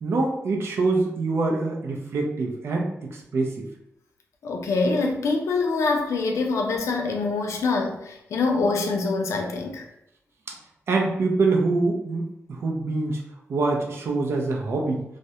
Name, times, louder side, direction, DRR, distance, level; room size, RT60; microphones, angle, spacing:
voice 1, 0.0-3.7 10.5-10.6 10.9-13.2 13.5-15.0, right 3 dB, 60° right, 0 dB, 0.5 m, -25 dB
voice 2, 4.4-9.8, left 3 dB, 90° left, 2 dB, 0.4 m, -25 dB
2.3 x 2.1 x 2.7 m, 0.80 s
wide cardioid pair, 165°, 5 cm